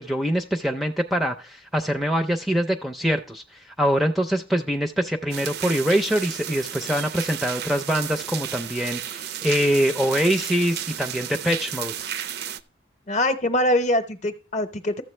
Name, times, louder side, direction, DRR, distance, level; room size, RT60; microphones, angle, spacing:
voice 1, 0.0-12.1, equal, ahead, 5 dB, 0.5 m, -24 dB
sound 1, 5.3-12.6, right 10 dB, 55° right, 0.4 m, -33 dB
voice 2, 13.1-15.0, left 1 dB, 35° left, 9 dB, 0.8 m, -23 dB
13.5 x 7.6 x 3.2 m, 0.36 s
head